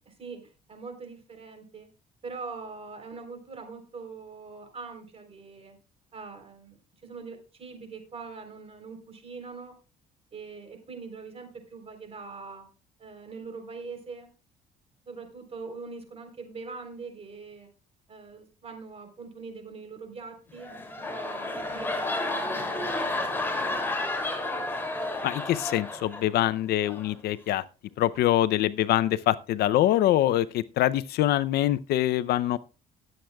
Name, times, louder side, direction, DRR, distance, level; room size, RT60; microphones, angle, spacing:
voice 1, 0.1-0.4 0.7-1.9 2.2-5.8 6.1-9.7 10.3-12.7 13.0-14.3 15.0-17.7 18.1-20.7 21.0-24.0, right 4 dB, 35° right, 3.7 m, -43 dB
sound 1, 20.5-26.5 26.8-27.1, left 2 dB, 15° left, 2.7 m, -31 dB
voice 2, 25.2-27.6 28.0-32.6, left 13 dB, 70° left, 0.6 m, -24 dB
19.0 x 7.8 x 2.3 m
cardioid pair, 110°, 17 cm